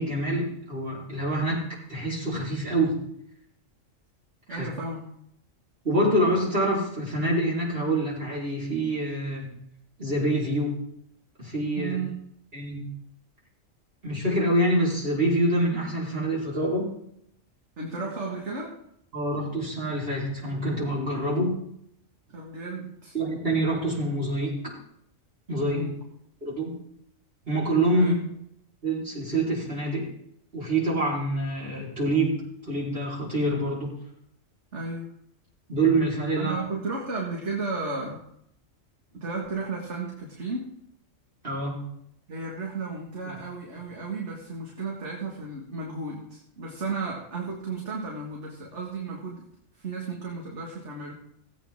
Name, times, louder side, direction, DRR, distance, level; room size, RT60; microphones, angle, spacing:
voice 1, 0.0-1.6 1.9-3.0 4.5-4.7 5.8-9.6 10.0-10.8 11.4-12.0 12.5-12.9 14.0-16.9 19.1-21.6 23.1-24.6 25.5-25.8 26.4-26.8 27.4-28.1 28.8-30.1 30.5-33.9 35.7-36.6 41.4-41.8 43.3-43.4, right 1 dB, 45° right, -5 dB, 4.6 m, -26 dB
voice 2, 4.5-5.1 11.8-12.3 17.8-18.8 22.3-23.1 25.6-26.0 27.9-28.2 34.7-35.1 36.4-38.2 39.1-40.8 42.3-49.5 49.8-51.1, right 3 dB, 60° right, -1 dB, 2.1 m, -34 dB
18.0 x 8.4 x 3.6 m, 0.73 s
omnidirectional pair, 1.4 m